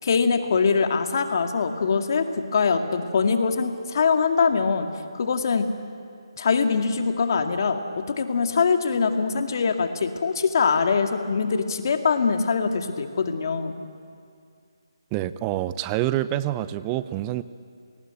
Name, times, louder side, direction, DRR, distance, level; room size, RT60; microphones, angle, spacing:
voice 1, 0.0-4.9 5.1-5.7 6.4-7.8 8.1-13.8, left 5 dB, 50° left, 5 dB, 2.1 m, -23 dB
voice 2, 15.1-17.4, right 14 dB, 20° right, 15 dB, 0.6 m, -26 dB
27.5 x 19.5 x 9.0 m, 2.3 s
figure-of-eight pair, 155°, 3 cm